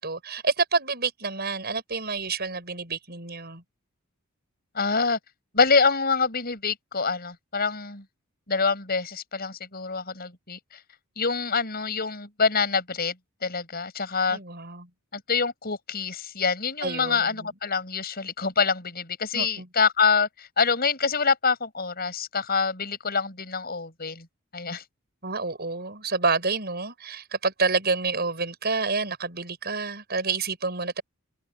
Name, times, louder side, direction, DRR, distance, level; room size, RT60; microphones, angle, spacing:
voice 1, 0.0-3.6 14.3-14.9 16.8-17.5 19.3-19.7 25.2-31.0, right 4 dB, 45° right, 7.5 m, -28 dB
voice 2, 4.7-5.2 5.5-8.0 8.5-10.6 11.2-13.2 13.4-14.4 15.1-24.3 24.5-24.8, left 5 dB, 45° left, 7.1 m, -26 dB
head